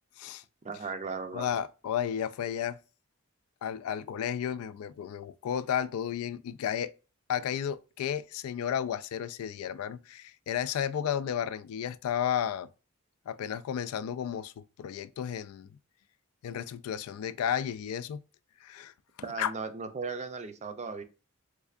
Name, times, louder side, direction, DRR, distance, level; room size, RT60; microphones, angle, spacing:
voice 1, 0.6-1.5 19.2-21.0, right 4 dB, 35° right, 0.4 m, -37 dB
voice 2, 1.3-2.8 3.6-6.9 7.3-12.7 13.3-15.7 16.4-18.2 18.6-18.9 19.4-19.5, left 9 dB, 90° left, 0.3 m, -33 dB
3.5 x 3.2 x 2.4 m
head